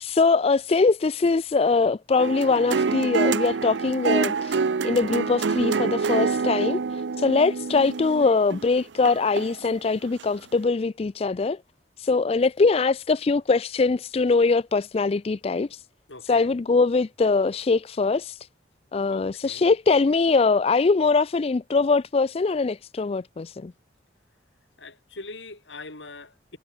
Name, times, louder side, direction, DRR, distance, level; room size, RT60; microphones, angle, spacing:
voice 1, 0.0-6.8 7.2-11.6 12.0-15.8 16.2-18.4 18.9-23.7, left 4 dB, 35° left, 0.4 m, -22 dB
sound 1, 2.2-9.7 10.2-10.3, right 5 dB, 75° right, 0.6 m, -26 dB
voice 2, 16.1-16.5 19.1-19.7 24.8-26.6, left 3 dB, 80° left, 5.0 m, -42 dB
head